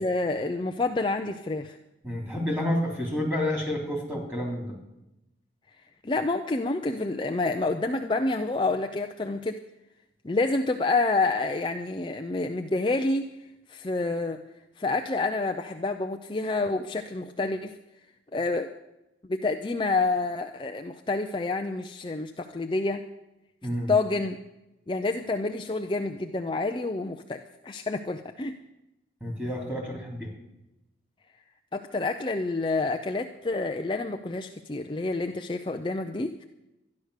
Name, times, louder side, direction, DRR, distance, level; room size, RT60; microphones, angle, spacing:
voice 1, 0.0-1.8 6.0-9.6 10.2-13.2 13.7-14.4 14.8-17.8 18.3-18.7 19.3-23.0 23.9-24.4 24.9-28.6 31.7-36.4, left 3 dB, 25° left, 5 dB, 0.5 m, -28 dB
voice 2, 2.0-4.7 23.6-23.9 29.2-30.3, left 1 dB, 10° right, 0 dB, 3.4 m, -29 dB
13.0 x 10.5 x 6.5 m, 0.93 s
head